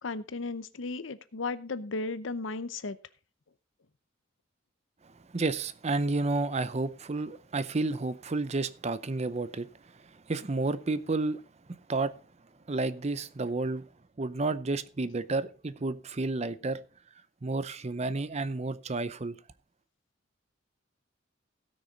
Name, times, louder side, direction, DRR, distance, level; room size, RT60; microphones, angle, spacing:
voice 1, 0.0-3.0, left 3 dB, 75° left, 0.8 m, -35 dB
voice 2, 5.3-9.7 10.3-11.4 11.9-12.1 12.7-13.8 14.2-16.8 17.4-19.4, right 3 dB, 35° right, 0.6 m, -31 dB
17.0 x 6.3 x 4.0 m
head